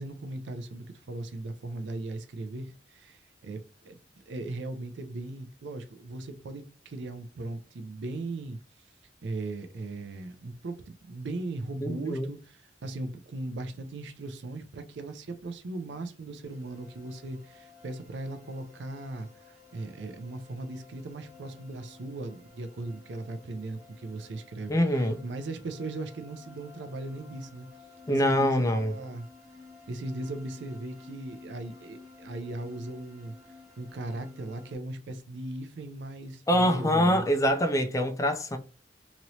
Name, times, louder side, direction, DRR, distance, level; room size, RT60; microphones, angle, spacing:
voice 1, 0.0-8.9 9.2-27.7 28.1-28.6 28.9-29.3 29.9-33.3 33.8-37.3, right 2 dB, 70° right, 0.4 m, -38 dB
voice 2, 11.8-12.3 24.7-25.2 28.1-28.9 36.5-38.6, equal, 15° left, 0.4 m, -24 dB
sound 1, 16.4-34.8, left 4 dB, 15° right, 1.2 m, -53 dB
3.0 x 2.9 x 2.6 m
head